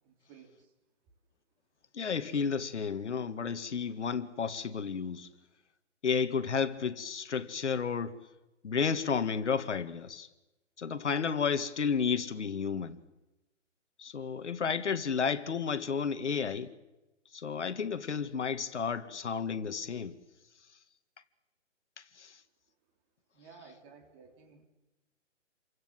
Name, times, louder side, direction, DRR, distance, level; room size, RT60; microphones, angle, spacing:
voice 1, 0.0-0.7 23.3-24.7, right 5 dB, 20° right, 3.3 m, -55 dB
voice 2, 1.9-5.3 6.0-8.2 8.6-10.3 10.8-13.0 14.0-16.7 17.3-20.2 22.0-22.4, left 6 dB, 65° left, 2.0 m, -32 dB
29.5 x 25.0 x 7.7 m
hypercardioid pair, 165°, 37 cm